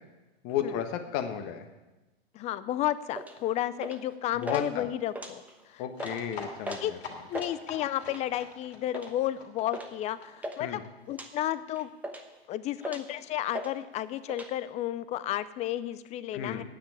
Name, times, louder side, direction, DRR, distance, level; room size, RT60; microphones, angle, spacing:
voice 1, 0.4-1.7 4.3-4.9 5.8-7.0 10.6-10.8 16.3-16.6, left 9 dB, 45° left, 7 dB, 1.4 m, -33 dB
voice 2, 2.3-5.8 6.7-6.9 7.3-11.9 12.5-16.6, left 13 dB, 20° left, 15 dB, 0.4 m, -32 dB
sound 1, 3.1-3.4 3.8-4.1 4.4-4.6 5.0-5.6 5.9-6.2 6.6-6.9 7.2-7.5 8.1-8.4 8.9-9.1 9.7-9.9 10.2-10.6 11.1-11.3 11.8-12.4 12.8-13.1 13.5-13.7 14.0-14.5, right 1 dB, 5° right, 1.0 m, -38 dB
sound 2, 5.9-11.5 11.8-11.9 12.1-12.2 12.4-12.5, left 4 dB, 80° left, 2.9 m, -44 dB
9.4 x 7.4 x 8.9 m, 1.1 s
hypercardioid pair, 115°, 32 cm